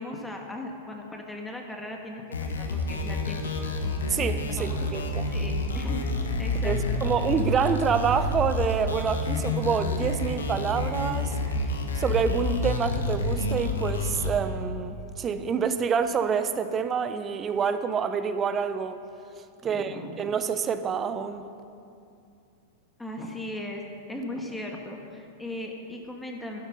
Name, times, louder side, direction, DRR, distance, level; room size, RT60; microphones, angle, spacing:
voice 1, 0.0-3.6 4.4-6.1 6.4-7.0 19.6-20.2 23.0-23.8 24.1-26.6, left 1 dB, 5° left, 1 dB, 1.6 m, -38 dB
sound 1, 2.3-14.3, left 2 dB, 90° left, 1.4 m, -28 dB
voice 2, 4.1-5.2 6.6-11.4 11.9-19.0 19.6-21.4, right 6 dB, 25° right, 11 dB, 0.8 m, -27 dB
12.0 x 11.5 x 5.5 m, 2.5 s
hypercardioid pair, 105°, 0 cm